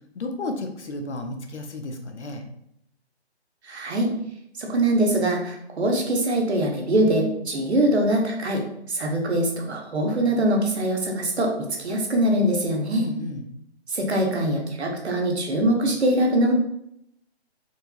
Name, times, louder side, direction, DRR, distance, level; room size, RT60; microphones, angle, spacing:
voice 1, 0.1-2.4 12.9-13.4, left 2 dB, 85° left, 5 dB, 0.7 m, -33 dB
voice 2, 3.6-4.1 4.6-8.6 8.9-13.1 13.9-16.5, right 1 dB, 70° right, 1 dB, 1.0 m, -23 dB
4.4 x 2.7 x 2.2 m, 0.76 s
figure-of-eight pair, 150°, 33 cm